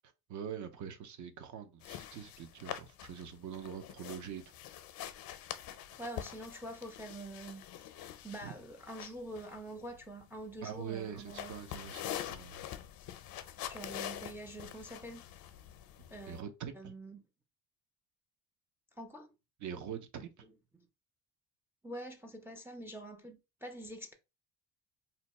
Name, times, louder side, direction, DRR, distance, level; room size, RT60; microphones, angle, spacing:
voice 1, 0.3-4.4 8.4-8.5 10.6-12.6 16.3-16.9 19.6-20.4, right 8 dB, 55° right, 0.7 m, -44 dB
sound 1, 1.8-16.4, left 11 dB, 75° left, 0.6 m, -45 dB
voice 2, 6.0-7.6 7.9-11.5 13.7-15.2 16.1-16.4 16.8-17.2 19.0-19.3 21.8-24.1, right 1 dB, 5° right, 0.4 m, -45 dB
2.7 x 2.2 x 4.0 m
cardioid pair, 145°, 36 cm